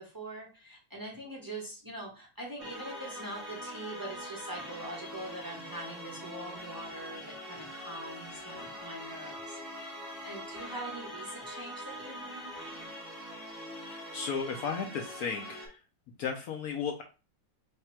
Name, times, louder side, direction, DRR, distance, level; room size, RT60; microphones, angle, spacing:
voice 1, 0.0-9.9 10.2-12.5, right 1 dB, 35° right, -3 dB, 0.3 m, -43 dB
sound 1, 2.6-15.7, equal, 10° right, 1.1 m, -43 dB
voice 2, 13.9-15.8 16.2-17.0, left 6 dB, 80° left, 4 dB, 0.8 m, -35 dB
3.4 x 2.8 x 4.4 m, 0.32 s
omnidirectional pair, 2.2 m